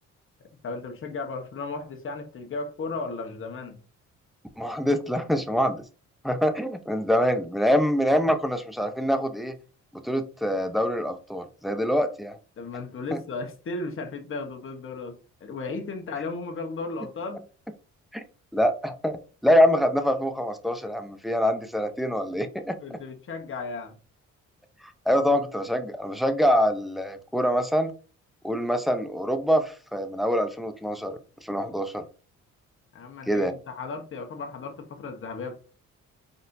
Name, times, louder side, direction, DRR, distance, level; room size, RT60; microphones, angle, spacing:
voice 1, 0.6-3.8 12.6-17.4 22.8-24.0 32.9-35.6, left 3 dB, 45° left, 1.1 m, -35 dB
voice 2, 4.6-5.8 6.2-9.6 9.9-12.4 13.1-13.2 18.1-18.2 18.5-22.8 24.8-27.9 28.4-32.0 33.3-33.5, equal, ahead, 0.6 m, -25 dB
4.1 x 4.0 x 2.6 m
cardioid pair, 90°, 30 cm